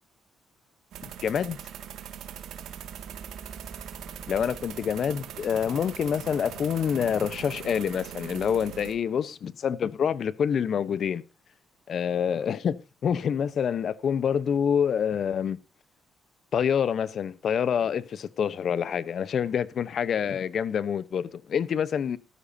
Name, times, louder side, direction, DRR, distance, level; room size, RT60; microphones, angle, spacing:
sound 1, 0.9-8.9, right 9 dB, 80° right, 1.9 m, -41 dB
voice 1, 1.2-1.6 4.3-11.2 11.9-15.6 16.5-22.2, left 8 dB, 60° left, 0.8 m, -27 dB
13.5 x 13.0 x 2.7 m
cardioid pair, 90°, 0 cm